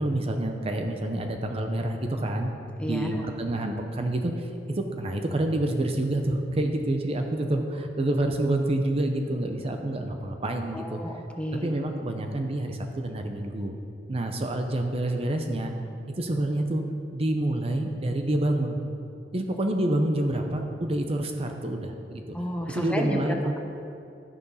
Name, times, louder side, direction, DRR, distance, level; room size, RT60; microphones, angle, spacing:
voice 1, 0.0-2.5 2.8-11.0 11.6-13.7 14.1-15.7 16.2-16.8 17.1-18.8 19.3-22.2 22.7-23.6, right 1 dB, 35° right, 4 dB, 0.7 m, -27 dB
voice 2, 2.8-3.3 10.7-11.8 22.3-23.2, equal, 5° left, 2 dB, 0.9 m, -32 dB
12.5 x 6.8 x 5.5 m, 2.5 s
head